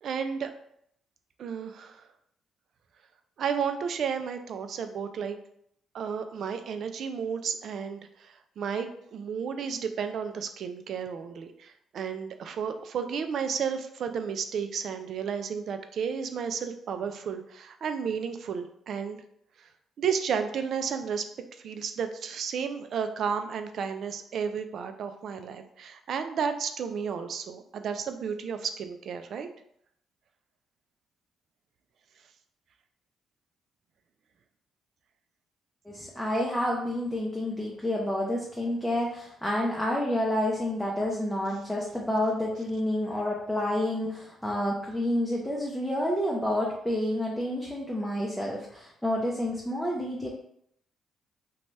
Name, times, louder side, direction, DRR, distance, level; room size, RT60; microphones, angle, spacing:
voice 1, 0.0-0.5 1.4-2.1 3.4-5.4 5.9-19.2 19.6-19.7 20.0-21.3 21.6-29.5, right 6 dB, 65° right, 8 dB, 0.3 m, -32 dB
voice 2, 35.9-50.3, left 1 dB, ahead, -4 dB, 0.5 m, -29 dB
2.7 x 2.2 x 3.0 m, 0.70 s
cardioid pair, 90°, 0 cm